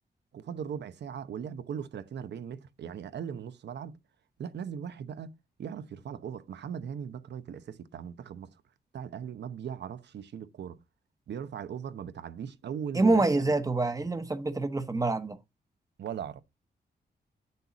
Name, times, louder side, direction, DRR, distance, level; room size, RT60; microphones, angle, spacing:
voice 1, 0.3-3.9 4.4-5.3 5.6-8.5 8.9-10.8 11.3-13.5 16.0-16.4, right 8 dB, 90° right, 1.0 m, -39 dB
voice 2, 12.9-15.4, right 2 dB, 20° right, 0.9 m, -26 dB
10.0 x 6.8 x 4.0 m
wide cardioid pair, 155°, 17 cm